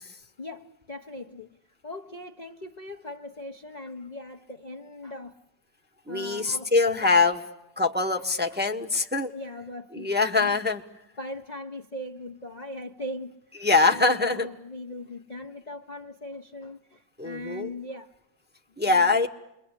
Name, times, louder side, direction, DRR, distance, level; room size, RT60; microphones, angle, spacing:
voice 1, 0.4-1.6 1.8-5.4 6.1-7.2 8.2-8.6 9.3-10.6 11.2-18.1 18.8-19.2, left 1 dB, 30° left, 0.9 m, -40 dB
voice 2, 6.1-7.4 7.8-9.3 9.9-10.8 13.6-14.5 17.2-17.7 18.8-19.3, left 3 dB, 5° right, 1.2 m, -23 dB
28.5 x 23.0 x 8.3 m
omnidirectional pair, 1.9 m